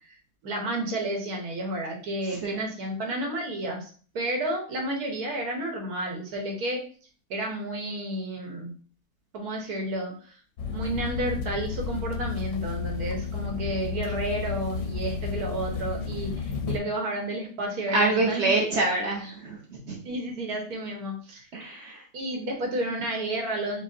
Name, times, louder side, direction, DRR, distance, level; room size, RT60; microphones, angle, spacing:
voice 1, 0.4-6.8 7.3-8.8 9.3-10.1 10.7-18.5 19.1-19.2 20.0-21.5 22.1-23.8, right 1 dB, 85° right, 1 dB, 1.4 m, -31 dB
sound 1, 10.6-16.8, left 6 dB, 70° left, 0.8 m, -32 dB
voice 2, 17.9-20.0 21.5-22.1, right 2 dB, 55° right, -1 dB, 0.9 m, -26 dB
4.8 x 2.1 x 2.6 m, 0.41 s
omnidirectional pair, 1.6 m